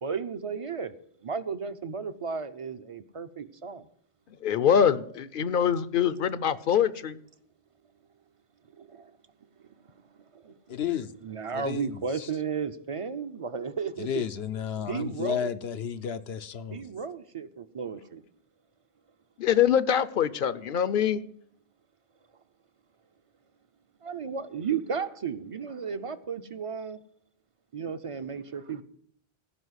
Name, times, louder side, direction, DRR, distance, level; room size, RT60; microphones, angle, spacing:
voice 1, 0.0-0.9 1.2-3.9 8.8-9.1 10.3-10.6 11.2-14.1 14.9-15.5 16.7-18.2 24.0-27.0 27.7-28.8, right 6 dB, 40° right, 12 dB, 0.6 m, -34 dB
voice 2, 4.4-7.2 19.4-21.2, left 8 dB, 60° left, 16 dB, 0.8 m, -24 dB
voice 3, 10.7-11.1 11.5-12.3 14.0-16.9, left 8 dB, 85° left, 11 dB, 1.0 m, -32 dB
15.5 x 5.4 x 8.1 m, 0.66 s
omnidirectional pair, 1.0 m